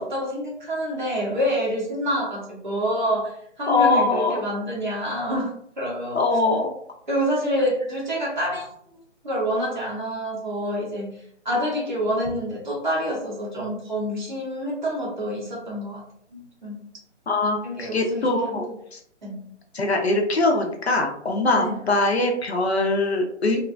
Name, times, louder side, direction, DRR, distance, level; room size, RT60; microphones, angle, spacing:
voice 1, 0.0-6.2 7.1-8.7 9.2-11.1 11.4-16.0 16.3-16.9 17.6-18.6 19.2-19.5 21.5-21.8, equal, 40° right, -4 dB, 0.9 m, -27 dB
voice 2, 3.7-4.4 6.1-6.7 17.3-19.0 19.7-23.6, left 2 dB, 60° left, 2 dB, 0.7 m, -22 dB
3.2 x 2.1 x 2.4 m, 0.66 s
hypercardioid pair, 180°, 36 cm